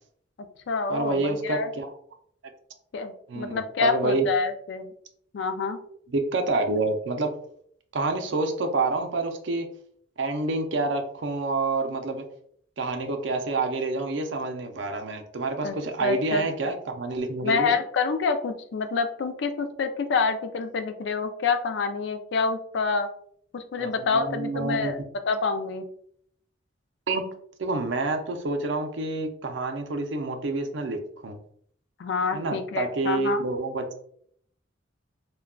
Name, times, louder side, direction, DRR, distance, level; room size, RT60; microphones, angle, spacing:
voice 1, 0.4-1.7 2.9-4.9 5.3-5.8 15.6-16.5 17.4-23.1 23.5-25.0 25.3-25.9 32.0-33.4, left 4 dB, 60° left, 8 dB, 0.3 m, -27 dB
voice 2, 0.9-1.9 3.3-4.3 6.1-7.3 7.9-9.7 10.2-12.2 12.8-17.8 23.8-25.0 27.1-27.2 27.6-31.4 32.3-34.0, right 3 dB, 65° right, 5 dB, 0.5 m, -28 dB
3.6 x 2.2 x 2.2 m, 0.64 s
head